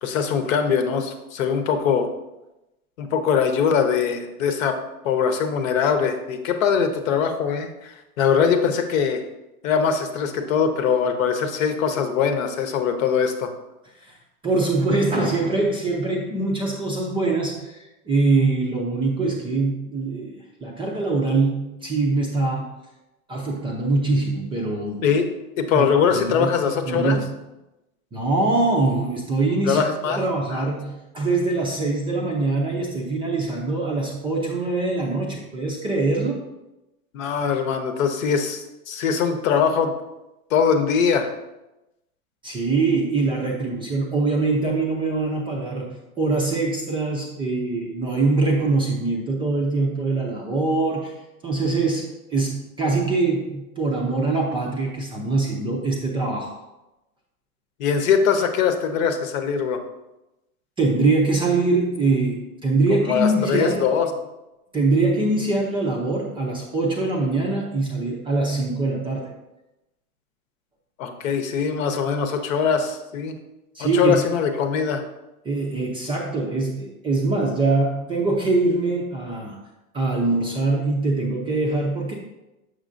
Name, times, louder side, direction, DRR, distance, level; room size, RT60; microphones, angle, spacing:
voice 1, 0.0-2.1 3.0-4.8 5.0-9.2 9.6-13.5 25.0-25.3 25.6-27.2 29.6-30.2 30.5-30.7 37.1-39.9 40.5-41.3 57.8-59.8 62.9-64.1 71.0-73.4 73.8-75.0, left 6 dB, 60° left, 7 dB, 1.0 m, -22 dB
voice 2, 14.4-22.7 23.3-25.0 25.7-26.5 26.9-27.2 28.1-36.5 42.4-51.2 51.4-56.5 60.8-63.8 64.7-69.3 73.7-74.2 75.4-79.6 79.9-82.1, right 3 dB, 10° right, -2 dB, 0.5 m, -23 dB
6.4 x 6.3 x 2.5 m, 0.97 s
hypercardioid pair, 125°, 45 cm